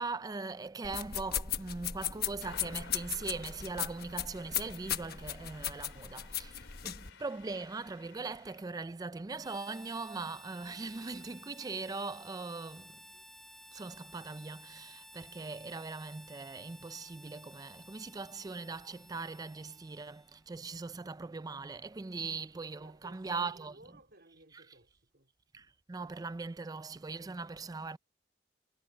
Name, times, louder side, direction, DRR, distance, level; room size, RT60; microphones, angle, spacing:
voice 1, 0.0-13.0 13.7-23.7 25.5-28.0, right 4 dB, 20° right, 0.4 m, -40 dB
sound 1, 0.8-7.1, left 10 dB, 55° left, 1.2 m, -37 dB
sound 2, 2.4-8.6, left 5 dB, 75° left, 3.8 m, -55 dB
Harmonica, 9.4-20.5, equal, ahead, 1.0 m, -55 dB
voice 2, 22.8-25.3, right 2 dB, 55° right, 3.5 m, -59 dB
head